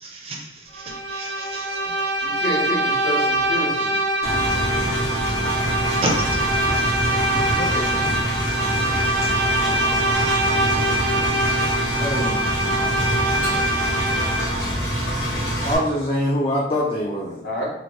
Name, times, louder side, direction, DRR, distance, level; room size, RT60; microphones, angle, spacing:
voice 1, 0.0-1.9 6.0-6.2 6.7-6.8 10.1-10.3, right 2 dB, 35° right, 1 dB, 0.5 m, -31 dB
Bowed string instrument, 0.7-14.6, right 1 dB, 75° right, 0.6 m, -24 dB
voice 2, 2.2-3.9 17.4-17.7, left 1 dB, 60° left, -4 dB, 0.9 m, -28 dB
Engine, 4.2-15.7, equal, 80° left, 1.3 m, -25 dB
voice 3, 7.2-8.1 11.9-12.5 13.6-13.8 15.3-17.4, left 1 dB, 30° left, -3 dB, 0.4 m, -25 dB
2.9 x 2.5 x 3.1 m, 0.80 s
head